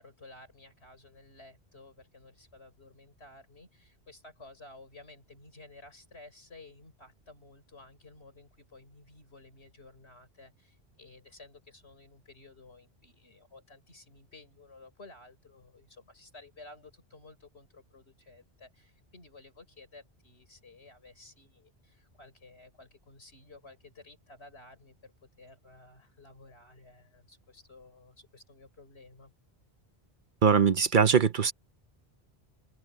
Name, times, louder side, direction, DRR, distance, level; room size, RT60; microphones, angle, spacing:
voice 1, 0.0-29.3, left 2 dB, 80° left, 4.9 m, -54 dB
voice 2, 30.4-31.5, right 6 dB, 55° right, 0.8 m, -22 dB
open air
omnidirectional pair, 1.1 m